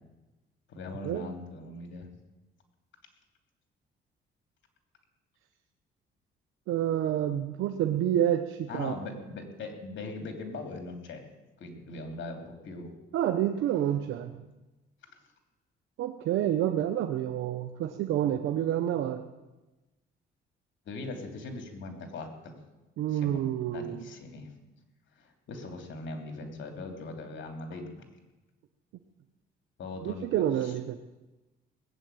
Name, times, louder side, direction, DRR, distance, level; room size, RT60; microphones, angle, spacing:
voice 1, 0.7-2.1 8.7-11.2 11.6-12.9 20.9-22.5 23.1-24.5 25.2-28.0 29.8-30.7, left 3 dB, 70° left, 4 dB, 3.0 m, -40 dB
voice 2, 6.7-9.0 13.1-14.3 16.0-19.2 23.0-24.1 30.0-31.0, right 11 dB, 85° right, 7 dB, 0.9 m, -28 dB
19.5 x 7.8 x 9.0 m, 1.1 s
cardioid pair, 90°, 20 cm